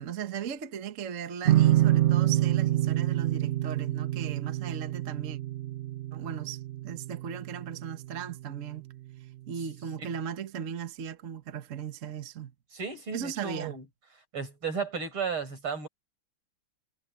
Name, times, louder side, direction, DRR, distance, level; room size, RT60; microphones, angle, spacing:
voice 1, 0.0-5.4 6.1-8.9 9.5-12.5 13.1-13.8, right 8 dB, 45° right, 1.3 m, -37 dB
sound 1, 1.4-8.7, right 14 dB, 60° right, 0.7 m, -27 dB
voice 2, 12.7-13.8 14.3-15.9, right 5 dB, 80° right, 6.3 m, -34 dB
omnidirectional pair, 2.3 m